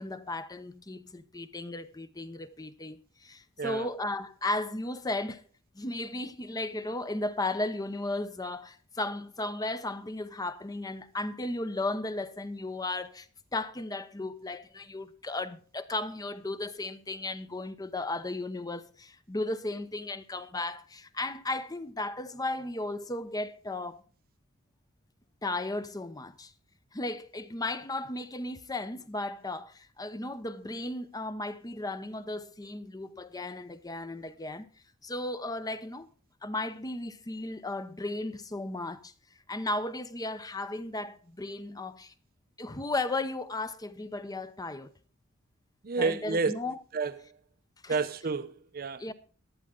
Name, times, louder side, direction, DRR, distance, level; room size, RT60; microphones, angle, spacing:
voice 1, 0.0-5.4 5.8-13.3 13.5-24.0 25.4-26.5 26.9-34.7 35.0-36.1 36.4-39.1 39.5-42.1 42.6-44.9 46.0-46.8 47.8-48.0 49.0-49.1, left 2 dB, 20° left, 0.8 m, -35 dB
voice 2, 3.6-3.9 45.8-46.5 46.9-47.2 47.9-49.0, right 4 dB, 45° right, 0.7 m, -30 dB
15.0 x 11.0 x 3.7 m
head